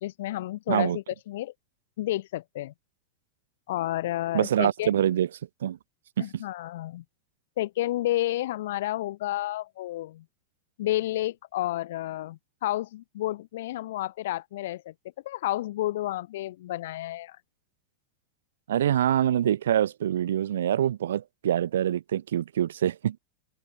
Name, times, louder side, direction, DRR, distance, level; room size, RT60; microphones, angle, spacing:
voice 1, 0.0-1.5 2.0-2.7 3.7-4.9 6.2-7.0 7.6-10.2 10.8-14.9 15.2-17.4, left 15 dB, 55° left, 0.6 m, -31 dB
voice 2, 4.3-5.3 5.6-5.8 6.2-6.4 18.7-23.2, right 10 dB, 60° right, 0.8 m, -25 dB
figure-of-eight pair, 90°, 0 cm